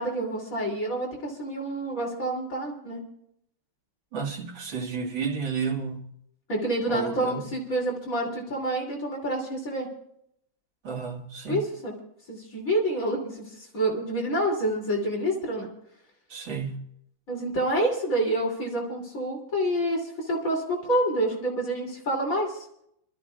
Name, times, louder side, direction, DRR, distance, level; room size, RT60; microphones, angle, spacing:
voice 1, 0.0-3.0 6.5-9.9 11.5-11.9 12.3-13.5 13.7-15.7 17.3-22.6, right 1 dB, 45° left, 3.5 m, -28 dB
voice 2, 4.1-6.1 6.9-7.5 10.8-11.6 16.3-16.9, right 6 dB, 85° right, 2.6 m, -31 dB
27.5 x 13.0 x 2.4 m
omnidirectional pair, 2.1 m